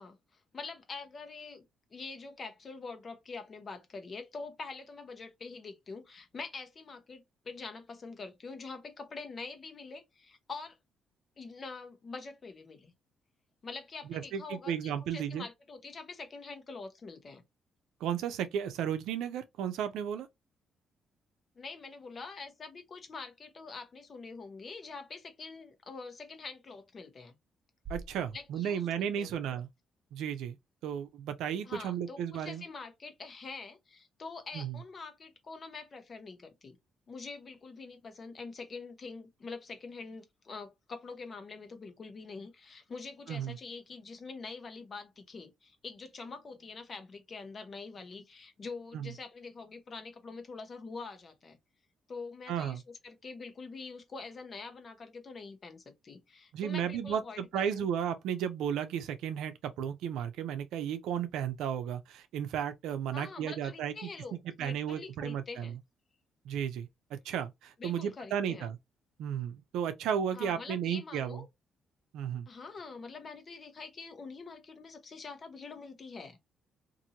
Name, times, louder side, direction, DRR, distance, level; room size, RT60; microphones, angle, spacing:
voice 1, 0.0-1.6 1.9-10.8 11.4-12.9 13.6-17.4 21.6-27.3 28.3-28.9 29.2-29.6 31.6-36.8 37.1-51.6 52.1-57.9 63.1-65.7 67.8-68.7 70.3-71.5 72.5-76.4, left 4 dB, 40° left, 0.9 m, -45 dB
voice 2, 14.1-15.5 18.0-20.3 27.9-29.7 30.1-30.6 30.8-32.6 34.5-34.8 43.3-43.6 48.9-49.1 52.5-52.8 56.5-65.8 66.4-66.9 67.2-68.8 69.2-71.4 72.1-72.5, right 8 dB, 85° right, 0.5 m, -34 dB
sound 1, 27.8-29.9, right 2 dB, 45° right, 0.6 m, -49 dB
2.8 x 2.6 x 2.7 m
cardioid pair, 90°, 0 cm